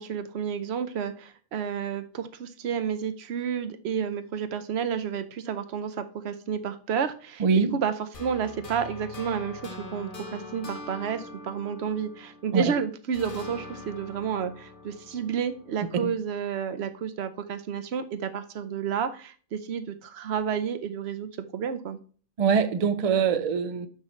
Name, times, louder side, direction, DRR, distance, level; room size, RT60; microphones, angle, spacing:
voice 1, 0.0-7.9 8.2-22.0, right 7 dB, 70° right, 0.8 m, -31 dB
voice 2, 7.4-7.8 12.5-12.6 16.0-16.1 22.4-23.9, right 6 dB, 50° right, 0.4 m, -23 dB
sound 1, 8.1-12.7 13.1-16.2, left 2 dB, 50° left, 1.2 m, -43 dB
6.3 x 5.6 x 3.0 m
omnidirectional pair, 1.2 m